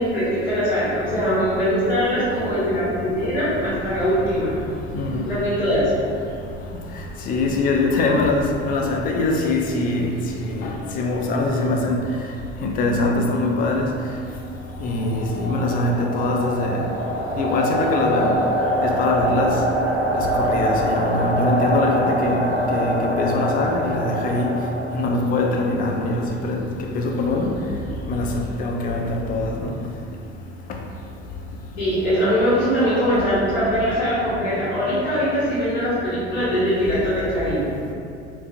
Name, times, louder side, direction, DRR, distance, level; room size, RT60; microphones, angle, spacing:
voice 1, 0.0-4.5 5.2-5.9 31.8-37.6, equal, 75° left, -10 dB, 1.3 m, -22 dB
voice 2, 4.9-5.3 7.3-10.1 10.3-12.0 12.6-13.9 14.8-16.8 17.3-18.4 18.8-19.6 20.1-22.4 22.7-24.5 24.9-26.6 26.9-27.6 28.1-28.3 28.6-29.7, left 2 dB, 25° left, 1 dB, 0.4 m, -22 dB
sound 1, 14.6-25.5, equal, 5° right, 0.7 m, -24 dB
3.8 x 2.4 x 2.4 m, 2.4 s
figure-of-eight pair, 65°, 33 cm